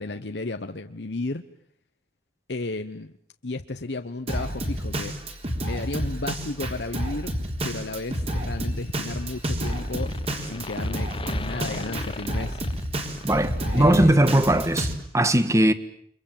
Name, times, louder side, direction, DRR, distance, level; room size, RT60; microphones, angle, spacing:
voice 1, 0.0-1.4 2.5-3.1 3.4-5.2 5.6-7.3 7.6-12.6 13.6-14.2, left 2 dB, 75° left, 1.1 m, -33 dB
Drum kit, 4.3-14.9, equal, 35° right, 3.8 m, -30 dB
sound 1, 8.7-9.4 9.6-14.1, left 3 dB, 30° left, 1.2 m, -38 dB
voice 2, 13.2-15.7, right 1 dB, 20° right, 1.5 m, -19 dB
30.0 x 25.0 x 7.6 m
head